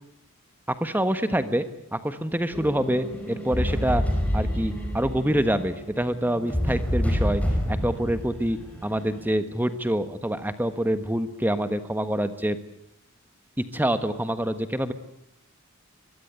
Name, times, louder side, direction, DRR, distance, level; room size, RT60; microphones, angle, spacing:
voice 1, 0.7-1.6 1.9-4.0 4.3-7.4 7.7-12.6 13.6-14.9, right 1 dB, 10° right, 10 dB, 1.4 m, -26 dB
Scary Cinematic sound and drums, 2.5-9.2, equal, 5° left, 4.9 m, -28 dB
24.0 x 21.5 x 8.3 m, 0.84 s
head